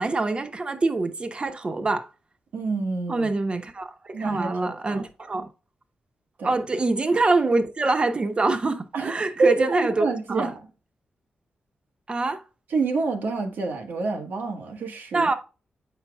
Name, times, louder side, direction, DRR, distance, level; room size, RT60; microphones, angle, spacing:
voice 1, 0.0-2.1 3.1-5.5 6.4-10.5 12.1-12.4 15.1-15.3, right 3 dB, 35° right, 1.0 m, -25 dB
voice 2, 2.5-3.3 4.1-5.0 6.4-6.5 8.9-9.1 9.4-10.6 12.7-15.3, right 3 dB, 90° right, 1.3 m, -27 dB
8.0 x 5.7 x 2.3 m
cardioid pair, 95°, 3 cm